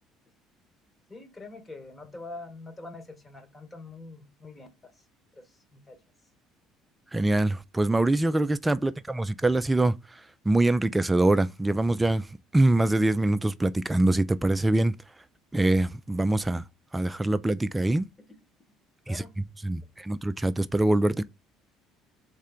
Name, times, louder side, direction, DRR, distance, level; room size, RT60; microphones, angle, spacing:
voice 1, 1.1-5.0 5.3-6.0 8.7-8.9 18.3-18.4 19.1-19.3 19.8-19.9, left 2 dB, 20° left, 1.2 m, -45 dB
voice 2, 7.1-15.0 15.5-16.7 16.9-18.1 19.1-21.2, right 2 dB, 15° right, 0.4 m, -24 dB
3.6 x 3.3 x 3.4 m
hypercardioid pair, 60°, 0 cm